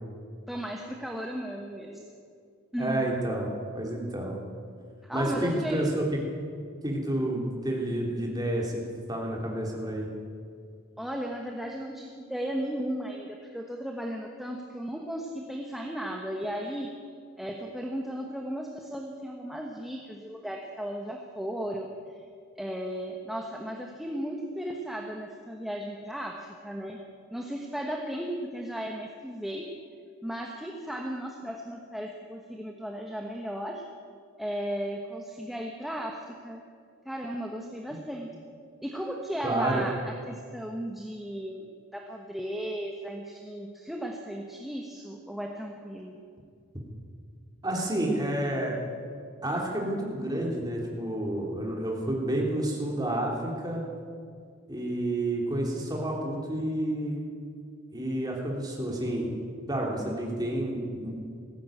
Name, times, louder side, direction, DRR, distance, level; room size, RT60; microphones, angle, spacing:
voice 1, 0.5-2.1 2.7-3.1 5.0-5.8 11.0-16.9 17.4-22.2 22.6-27.0 27.3-29.8 30.2-33.8 34.4-36.6 37.0-38.3 38.8-41.7 41.9-46.2, equal, ahead, 1 dB, 1.2 m, -35 dB
voice 2, 2.8-3.5 3.7-4.4 5.1-6.2 6.8-10.1 39.4-39.8 47.6-48.8 49.4-53.8 54.7-57.2 57.9-59.4 59.7-61.1, right 1 dB, 15° right, -1 dB, 3.5 m, -30 dB
19.0 x 15.5 x 9.1 m, 2.2 s
head